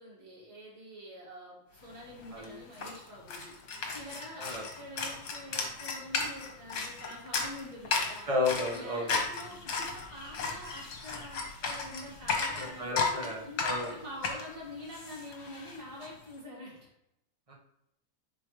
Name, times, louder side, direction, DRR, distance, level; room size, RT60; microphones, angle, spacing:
voice 1, 0.0-3.5 3.9-8.3 8.7-16.9, equal, 55° right, -4 dB, 2.8 m, -46 dB
sound 1, 1.9-2.0 2.2-16.1, left 4 dB, 60° left, 1.6 m, -35 dB
voice 2, 8.3-9.2 12.6-13.9 17.5-17.6, left 2 dB, 20° right, -3 dB, 1.2 m, -33 dB
9.9 x 4.5 x 3.2 m, 0.83 s
omnidirectional pair, 2.0 m